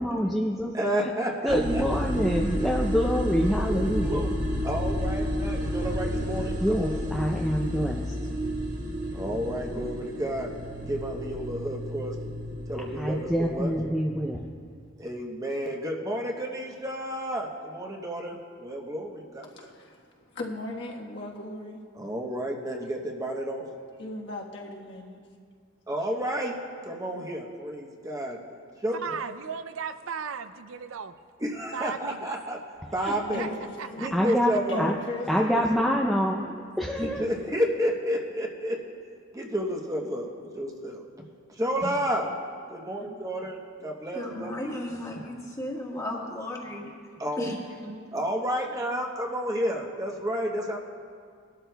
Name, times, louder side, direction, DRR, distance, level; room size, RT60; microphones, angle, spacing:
voice 1, 0.0-0.7 1.0-1.1 1.4-4.2 6.6-8.2 12.7-14.5 33.0-33.1 34.1-35.0 35.3-37.3, equal, ahead, -2 dB, 0.5 m, -26 dB
voice 2, 0.7-1.8 3.6-4.3 4.6-7.0 9.1-10.5 10.9-12.1 12.7-13.7 15.0-19.7 22.0-23.7 25.9-26.6 26.8-28.4 28.8-29.2 31.4-32.6 32.9-33.5 34.0-34.9 35.4-35.8 37.0-38.8 39.3-41.0 41.6-42.3 42.7-44.7 47.2-47.5 48.1-50.8, equal, 15° right, 0 dB, 0.9 m, -31 dB
sound 1, 1.5-13.8, equal, 40° right, 1.6 m, -31 dB
voice 3, 19.5-21.8 24.0-25.2 33.3-34.2 34.7-35.7, left 2 dB, 55° left, -2 dB, 1.4 m, -38 dB
voice 4, 29.0-31.1 31.7-32.3 33.4-33.5 33.8-34.4, right 6 dB, 75° right, 10 dB, 0.5 m, -36 dB
voice 5, 44.1-46.9 47.4-48.2, left 1 dB, 15° left, -2 dB, 1.5 m, -35 dB
20.0 x 12.5 x 2.3 m, 2.1 s
head